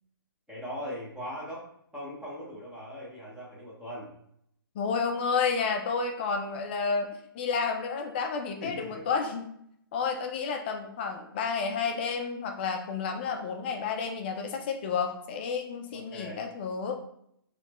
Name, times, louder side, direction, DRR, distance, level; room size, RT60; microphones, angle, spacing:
voice 1, 0.5-1.6 1.9-4.1 8.6-9.1 15.9-16.4, equal, 5° right, -6 dB, 0.9 m, -39 dB
voice 2, 4.7-7.1 7.3-9.5 9.9-17.0, left 5 dB, 25° left, 4 dB, 0.4 m, -30 dB
4.1 x 3.1 x 2.9 m, 0.71 s
hypercardioid pair, 160°, 13 cm